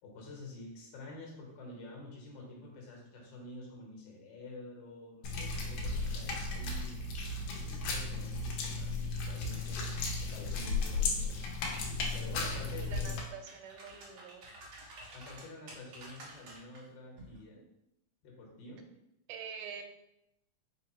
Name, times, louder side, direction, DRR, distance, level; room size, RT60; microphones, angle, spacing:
voice 1, 0.0-7.0 7.5-11.3 12.1-13.1 15.1-17.6 18.2-18.9, left 2 dB, 75° left, -2 dB, 2.4 m, -49 dB
sound 1, 5.2-13.2, left 3 dB, 90° left, 2.3 m, -35 dB
sound 2, 12.0-12.9 13.3-16.8 17.2-17.4, right 2 dB, 60° right, 1.4 m, -51 dB
voice 2, 12.8-14.5 15.1-15.2 19.3-19.8, right 7 dB, 85° right, 6 dB, 2.1 m, -46 dB
5.1 x 2.1 x 4.2 m, 0.84 s
omnidirectional pair, 3.6 m